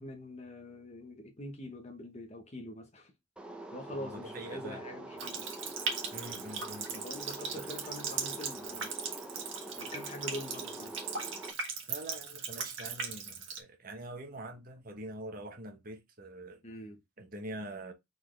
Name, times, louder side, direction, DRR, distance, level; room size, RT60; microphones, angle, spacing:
voice 1, 0.0-3.1 3.7-5.5 6.9-8.9 9.8-10.9 16.6-17.0, left 1 dB, 35° left, 1.0 m, -44 dB
sound 1, 3.4-11.5, right 1 dB, 5° right, 0.6 m, -45 dB
voice 2, 4.0-4.8 6.1-7.0 7.6-7.7 11.9-16.6 17.2-17.9, right 1 dB, 45° right, 1.1 m, -44 dB
Water tap faucet, 5.2-13.6, right 5 dB, 70° right, 1.4 m, -38 dB
4.3 x 3.9 x 3.2 m
head